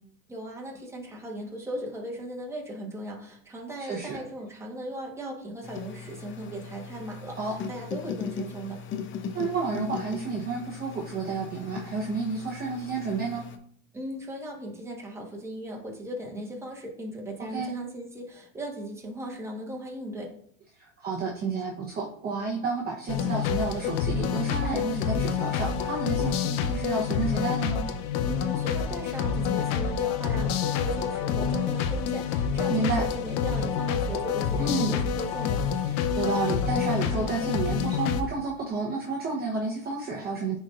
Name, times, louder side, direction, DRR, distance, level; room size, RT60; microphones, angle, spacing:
voice 1, 0.3-8.8 13.9-20.4 28.2-35.7, right 1 dB, 5° right, -1 dB, 1.3 m, -37 dB
voice 2, 3.9-4.2 7.3-7.6 9.3-13.5 17.5-17.7 20.8-27.8 32.7-33.0 34.6-34.9 36.2-40.6, right 4 dB, 25° right, -3 dB, 1.0 m, -30 dB
sound 1, 5.6-13.6, left 6 dB, 30° left, 0.7 m, -39 dB
sound 2, 23.1-38.2, left 7 dB, 60° left, 0.8 m, -27 dB
9.5 x 4.1 x 2.5 m, 0.62 s
supercardioid pair, 115°, 40 cm